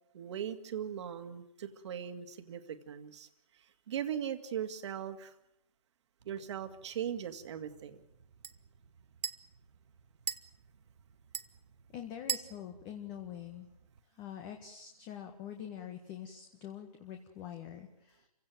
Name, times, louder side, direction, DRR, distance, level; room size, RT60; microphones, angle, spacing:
voice 1, 0.1-3.3 3.9-5.3 6.3-8.0, right 9 dB, 45° right, 8 dB, 2.3 m, -39 dB
sound 1, 6.2-14.0, right 6 dB, 80° right, 1.6 m, -45 dB
voice 2, 11.9-13.7 14.1-18.3, left 10 dB, 20° left, 5 dB, 1.7 m, -45 dB
28.5 x 17.0 x 9.3 m, 0.79 s
hypercardioid pair, 160°, 20 cm